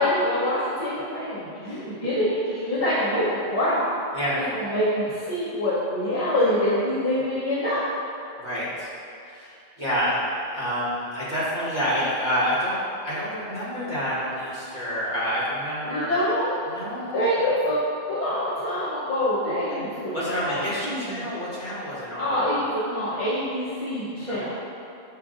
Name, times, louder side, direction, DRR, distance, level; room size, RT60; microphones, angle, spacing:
voice 1, 0.0-3.8 4.4-7.8 15.8-16.6 17.1-17.8 18.1-21.3 22.2-24.5, left 1 dB, 40° left, -10 dB, 0.8 m, -25 dB
voice 2, 4.1-4.5 8.4-8.9 9.2-10.2 10.5-12.8 13.0-16.2 16.7-17.5 19.4-19.8 20.1-22.5 24.3-24.5, equal, 55° left, -10 dB, 1.6 m, -28 dB
6.9 x 2.5 x 2.4 m, 2.6 s
omnidirectional pair, 1.1 m